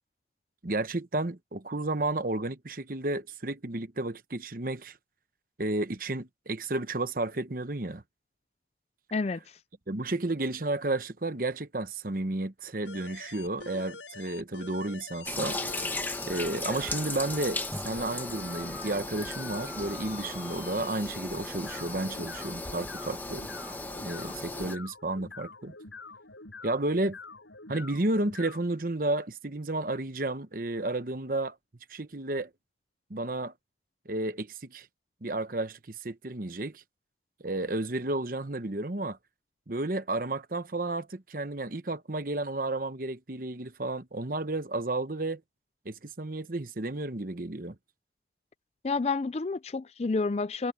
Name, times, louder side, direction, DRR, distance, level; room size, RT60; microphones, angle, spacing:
voice 1, 0.6-5.0 5.6-8.0 9.9-15.6 16.3-23.5 24.0-25.7 26.6-27.2 27.7-31.6 31.9-32.5 33.1-33.5 34.0-34.9 35.2-36.8 37.4-39.2 39.7-45.4 45.8-47.8, right 2 dB, 50° right, 1.1 m, -32 dB
sound 1, 12.8-28.6, left 4 dB, 85° left, 5.9 m, -46 dB
Toilet flush, 15.2-24.8, left 2 dB, 10° left, 1.4 m, -36 dB
voice 2, 48.8-50.7, left 3 dB, 35° left, 0.4 m, -29 dB
head